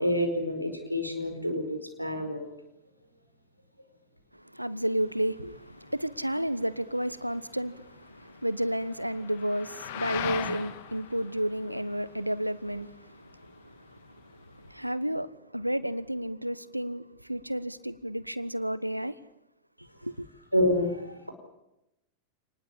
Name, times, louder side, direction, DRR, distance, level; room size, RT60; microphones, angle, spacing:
voice 1, 0.0-2.5 20.5-21.3, left 1 dB, 90° left, 5.0 m, -28 dB
voice 2, 4.3-19.2 20.0-20.3, equal, 90° right, 1.2 m, -32 dB
sound 1, 5.0-14.9, left 10 dB, 55° left, 2.7 m, -42 dB
27.5 x 20.0 x 8.7 m
figure-of-eight pair, 90°, 0 cm